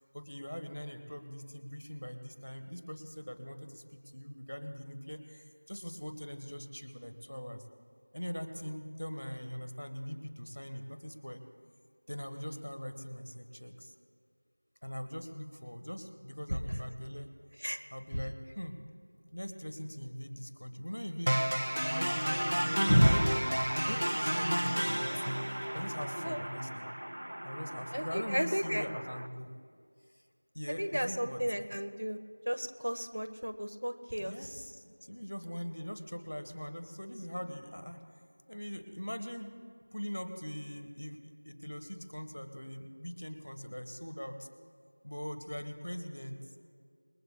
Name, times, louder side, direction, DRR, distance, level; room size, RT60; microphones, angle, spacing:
voice 1, 0.1-7.6 8.1-11.4 12.1-13.9 14.8-17.3 17.9-18.8 19.3-23.2 23.9-26.9 27.4-29.5 30.1-30.2 30.5-31.4 34.2-38.0 38.5-39.5 39.9-44.5 45.0-46.4, equal, 40° left, 7 dB, 1.3 m, -42 dB
sound 1, 21.3-29.3, equal, 45° right, 0.5 m, -33 dB
voice 2, 22.8-23.2 26.2-26.4 27.9-28.8 30.8-32.2 32.5-34.5, equal, 65° right, 8 dB, 1.1 m, -31 dB
27.5 x 21.5 x 2.3 m, 2.2 s
figure-of-eight pair, 180°, 0 cm